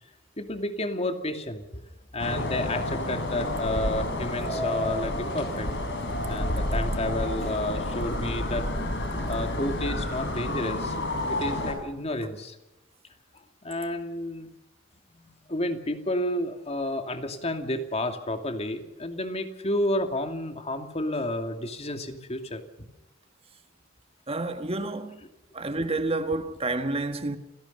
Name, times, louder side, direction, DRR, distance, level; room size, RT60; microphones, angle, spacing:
voice 1, 0.4-1.8 2.1-5.7 6.3-8.7 9.3-11.0 11.3-12.6 13.3-14.5 15.1-22.9, left 1 dB, 30° left, 2.5 m, -31 dB
sound 1, 2.2-11.7, left 1 dB, 60° left, 6.6 m, -30 dB
voice 2, 24.3-25.2 25.5-27.4, right 2 dB, 30° right, 1.6 m, -29 dB
28.5 x 17.5 x 5.4 m
head